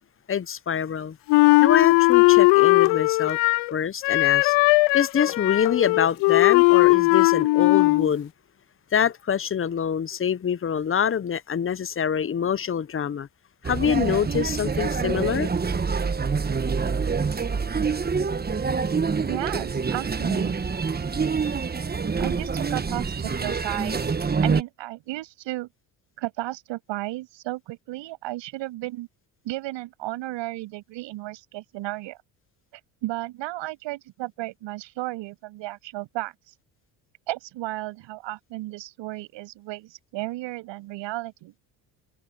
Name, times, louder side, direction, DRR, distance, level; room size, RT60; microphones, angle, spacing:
voice 1, 0.3-1.2 1.6-3.4 3.7-4.6 4.9-8.3 8.9-13.3 13.6-15.5, left 8 dB, 30° left, 0.8 m, -25 dB
Wind instrument woodwind instrument, 1.3-3.7 4.0-8.1, left 26 dB, 75° left, 0.6 m, -18 dB
sound 1, 13.6-24.6, right 5 dB, 20° right, 1.3 m, -26 dB
voice 2, 19.3-20.5 22.2-24.1 24.4-25.7 26.2-29.1 29.4-32.2 32.7-36.3 37.3-41.5, right 17 dB, 75° right, 7.5 m, -34 dB
supercardioid pair, 80°, 45 cm